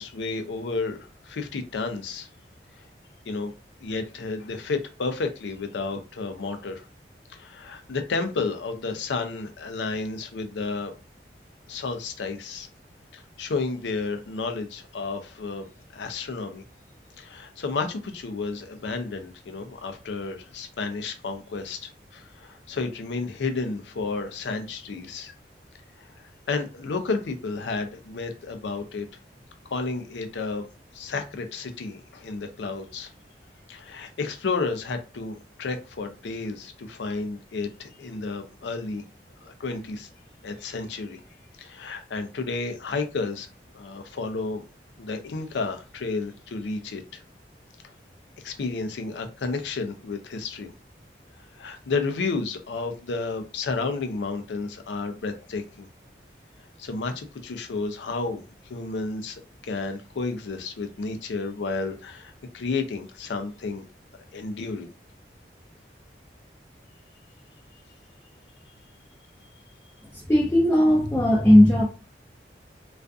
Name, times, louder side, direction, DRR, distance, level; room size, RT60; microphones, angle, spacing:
voice 1, 0.0-2.3 3.3-3.5 3.8-6.8 7.3-10.9 11.7-12.7 13.1-15.7 15.9-16.6 17.2-25.3 26.5-29.1 29.7-30.7 30.9-33.1 33.7-39.0 39.4-40.1 40.4-41.2 41.6-43.5 43.7-44.6 45.0-47.2 48.4-50.7 51.6-55.9 56.8-58.4 58.7-63.8 64.3-64.9, left 4 dB, 85° left, 0.4 m, -31 dB
voice 2, 70.1-71.8, left 1 dB, 15° left, 0.4 m, -17 dB
2.5 x 2.4 x 2.3 m
head